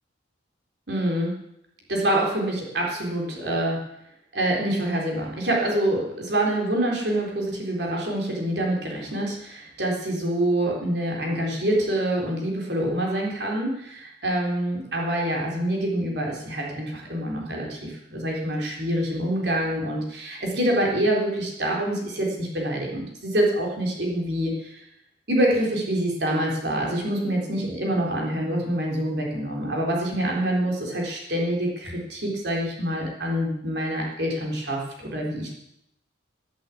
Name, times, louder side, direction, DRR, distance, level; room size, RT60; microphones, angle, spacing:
voice 1, 0.9-1.4 1.9-3.9 4.3-24.8 25.3-35.5, right 1 dB, 60° right, -1 dB, 3.9 m, -26 dB
11.0 x 11.0 x 8.5 m, 0.79 s
head